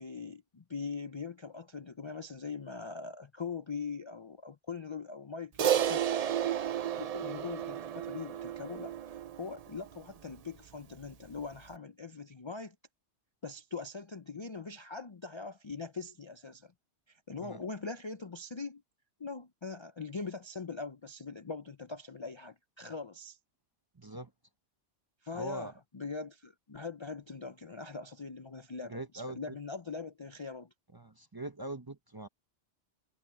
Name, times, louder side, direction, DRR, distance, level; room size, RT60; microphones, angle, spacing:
voice 1, 0.0-6.0 7.0-12.7 13.4-16.7 17.1-18.8 19.2-23.4 25.2-30.7, left 4 dB, 35° left, 0.5 m, -42 dB
Crash cymbal, 5.6-10.2, right 10 dB, 55° right, 0.4 m, -32 dB
voice 2, 24.0-24.3 25.3-25.7 28.9-29.6 30.9-32.3, right 1 dB, 25° right, 0.7 m, -42 dB
omnidirectional pair, 1.2 m